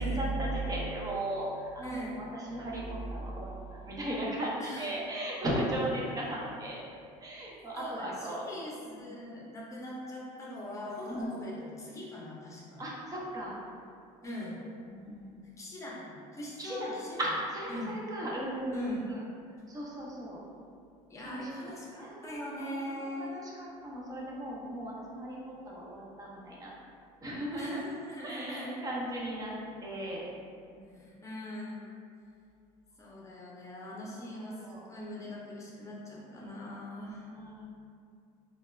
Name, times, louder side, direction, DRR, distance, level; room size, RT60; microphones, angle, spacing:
voice 1, 0.0-6.8 7.2-8.4 8.9-9.1 11.1-11.3 12.8-13.6 14.9-15.3 16.6-19.2 19.7-20.4 21.2-21.5 22.0-25.4 25.6-26.7 27.2-27.8 28.2-29.5 29.8-30.3 30.7-30.9 34.4-34.8 37.0-37.6, right 1 dB, 25° right, -4 dB, 0.6 m, -36 dB
voice 2, 1.8-2.2 4.6-4.9 7.7-12.9 14.2-14.6 15.6-17.2 17.7-18.0 18.7-19.0 21.1-23.3 27.5-28.8 30.9-32.0 33.0-37.3, left 1 dB, 20° left, -5 dB, 0.7 m, -41 dB
2.3 x 2.0 x 3.1 m, 2.4 s
supercardioid pair, 105°, 15 cm